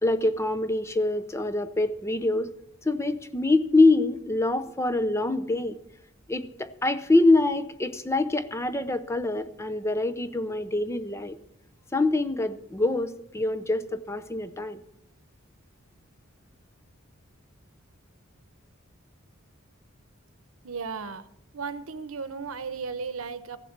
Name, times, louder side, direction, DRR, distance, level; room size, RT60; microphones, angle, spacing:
voice 1, 0.0-2.5 2.8-5.8 6.3-11.4 11.9-14.8, left 2 dB, 15° left, 12 dB, 0.6 m, -25 dB
voice 2, 20.6-21.3 21.5-23.6, right 5 dB, 85° right, 13 dB, 1.0 m, -35 dB
15.0 x 7.5 x 7.3 m, 0.77 s
head